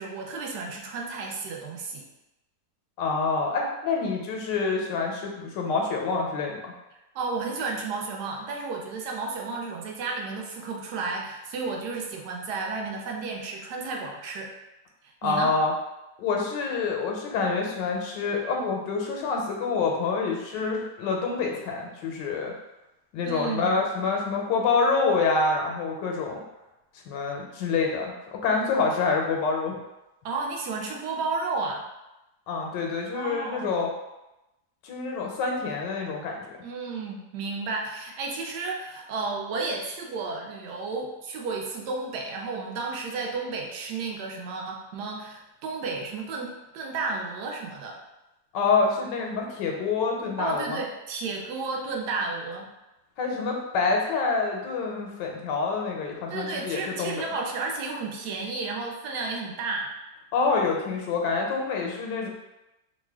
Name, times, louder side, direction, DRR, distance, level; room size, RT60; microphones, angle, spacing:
voice 1, 0.0-2.1 7.1-14.5 15.0-15.6 23.3-23.7 30.2-31.8 33.1-33.8 36.6-48.0 50.4-52.7 56.3-59.9, right 4 dB, 75° right, 0 dB, 1.1 m, -32 dB
voice 2, 3.0-6.7 15.2-15.7 16.2-22.5 23.1-26.4 27.1-29.8 32.5-33.9 34.8-36.4 48.5-50.8 53.2-57.3 60.3-62.3, left 4 dB, 90° left, 0 dB, 1.2 m, -27 dB
3.0 x 2.1 x 3.4 m, 0.96 s
omnidirectional pair, 1.8 m